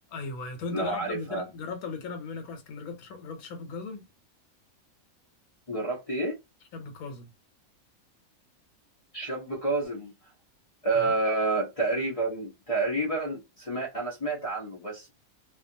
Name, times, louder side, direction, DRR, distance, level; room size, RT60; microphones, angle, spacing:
voice 1, 0.1-4.1 6.7-7.3 10.9-11.1, left 4 dB, 85° left, 1.2 m, -37 dB
voice 2, 0.7-1.4 5.7-6.4 9.1-10.1 10.8-15.1, right 3 dB, 35° left, 0.6 m, -29 dB
2.5 x 2.3 x 2.6 m
omnidirectional pair, 1.5 m